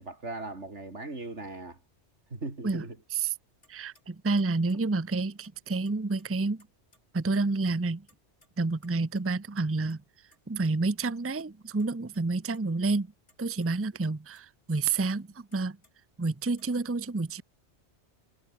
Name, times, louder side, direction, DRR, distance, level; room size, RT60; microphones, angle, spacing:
voice 1, 0.0-1.8 2.3-3.0, right 2 dB, 85° right, 4.3 m, -38 dB
sound 1, 3.6-3.7 4.0-4.1 4.4-5.5 5.9-6.7 6.9-7.0 7.3-7.8 8.0-8.5 8.8-10.0 10.3-10.7 11.1-11.2 11.4-11.5 11.8-12.2 12.5-13.0 13.3-13.7 14.0-14.1 14.4-14.5 14.8-15.9 16.3-16.7, left 1 dB, 85° left, 7.4 m, -62 dB
voice 2, 3.7-6.7 7.1-8.1 8.6-10.0 10.5-13.1 13.4-15.8 16.2-17.4, right 3 dB, 15° right, 0.6 m, -29 dB
omnidirectional pair, 1.2 m